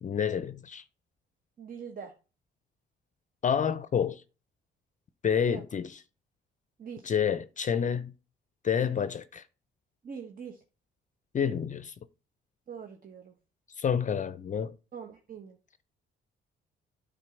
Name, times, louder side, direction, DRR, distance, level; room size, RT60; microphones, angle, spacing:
voice 1, 0.0-0.8 3.4-4.2 5.2-5.9 7.0-8.1 8.6-9.4 11.3-11.9 13.8-14.7, left 7 dB, 40° left, 0.5 m, -28 dB
voice 2, 1.6-2.1 5.4-5.6 6.8-7.1 10.0-10.6 12.7-13.3 14.9-15.6, right 6 dB, 45° right, 1.1 m, -43 dB
8.9 x 3.8 x 6.1 m
cardioid pair, 90°, 20 cm